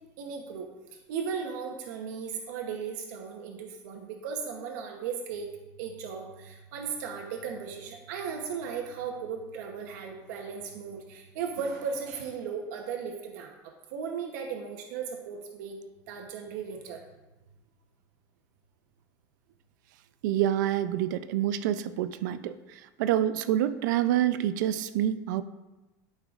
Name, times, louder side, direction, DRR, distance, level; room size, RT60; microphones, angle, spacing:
voice 1, 0.2-0.7 1.1-5.5 5.8-15.8 16.1-17.0, right 6 dB, 70° right, 2 dB, 0.9 m, -36 dB
voice 2, 20.2-25.4, right 11 dB, 90° right, 12 dB, 0.5 m, -27 dB
11.5 x 5.6 x 2.5 m, 1.1 s
cardioid pair, 165°, 10 cm